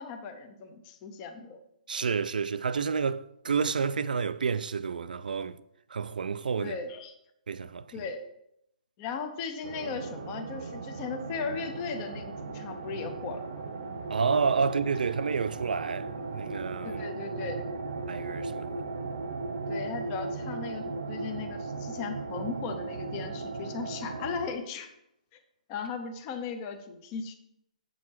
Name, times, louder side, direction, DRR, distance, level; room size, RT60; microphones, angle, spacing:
voice 1, 0.0-1.6 6.6-7.1 7.9-8.2 9.0-13.6 16.8-17.6 19.7-24.9 25.3-25.4 25.7-27.3, left 5 dB, 15° left, 0.6 m, -37 dB
voice 2, 1.9-5.6 5.9-6.8 7.5-7.8 14.1-17.0 18.1-18.7, right 5 dB, 80° right, 0.5 m, -29 dB
sound 1, 9.6-24.5, right 3 dB, 55° right, 0.9 m, -37 dB
8.5 x 6.3 x 4.6 m
hypercardioid pair, 175°, 5 cm